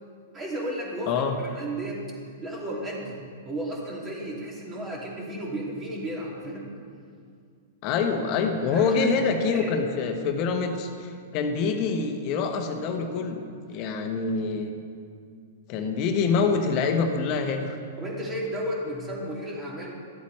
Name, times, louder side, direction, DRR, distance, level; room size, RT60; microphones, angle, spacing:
voice 1, 0.3-2.0 2.4-3.2 3.4-6.7 8.7-8.9 9.5-9.7 18.0-19.9, right 1 dB, 20° right, -3 dB, 2.5 m, -33 dB
voice 2, 1.1-1.4 7.8-14.7 15.7-17.8, left 5 dB, 45° left, 5 dB, 1.1 m, -26 dB
12.5 x 8.3 x 3.3 m, 2.2 s
hypercardioid pair, 120°, 0 cm